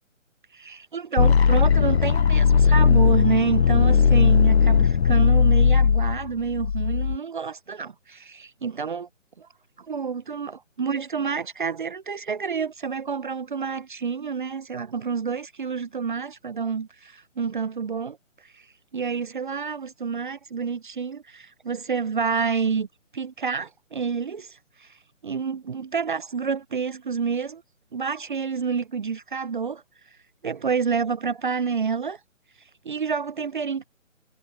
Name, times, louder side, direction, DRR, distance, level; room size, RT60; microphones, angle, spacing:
voice 1, 0.5-9.1 9.4-9.5 9.9-18.2 18.4-18.7 18.9-22.9 23.1-25.0 25.2-27.6 27.9-29.8 30.4-32.2 32.8-33.8, right 5 dB, 40° right, 0.9 m, -28 dB
sound 1, 1.2-7.2, left 6 dB, 55° left, 0.8 m, -18 dB
figure-of-eight pair, 155°, 39 cm